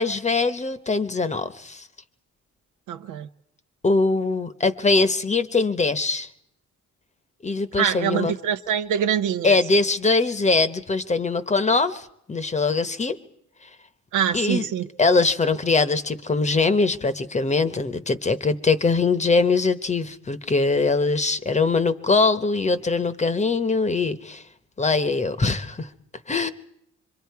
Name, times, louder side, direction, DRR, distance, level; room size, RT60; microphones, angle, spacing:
voice 1, 0.0-1.9 3.8-6.3 7.4-8.3 9.4-13.2 14.3-14.7 15.0-24.4 24.8-25.9 26.3-26.5, left 3 dB, 25° left, 0.9 m, -22 dB
voice 2, 2.9-3.3 7.8-9.6 14.1-14.9, right 8 dB, 80° right, 0.8 m, -24 dB
26.0 x 23.0 x 4.7 m
cardioid pair, 90°, 30 cm